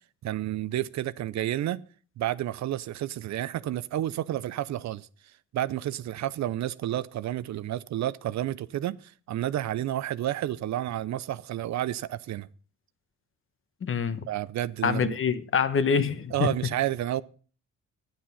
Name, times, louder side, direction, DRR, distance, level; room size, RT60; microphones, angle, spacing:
voice 1, 0.2-1.8 2.2-5.1 5.5-12.5 14.3-15.2 16.3-17.2, right 13 dB, 65° right, 0.6 m, -30 dB
voice 2, 13.8-14.3 14.8-16.5, left 6 dB, 45° left, 1.2 m, -25 dB
10.5 x 9.3 x 5.5 m
cardioid pair, 90°, 30 cm